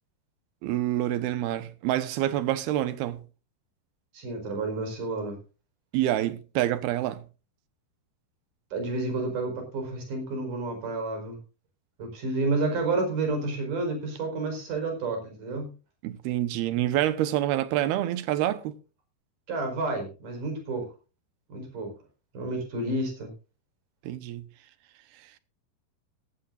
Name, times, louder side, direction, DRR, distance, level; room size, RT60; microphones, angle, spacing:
voice 1, 0.6-3.2 5.9-7.2 16.0-18.7 24.0-24.4, right 13 dB, 80° right, 3.0 m, -27 dB
voice 2, 4.1-5.4 8.7-11.4 12.0-15.7 19.5-20.9 21.5-21.9 22.3-23.3, right 2 dB, 55° right, 6.2 m, -30 dB
17.5 x 15.0 x 2.6 m
omnidirectional pair, 4.5 m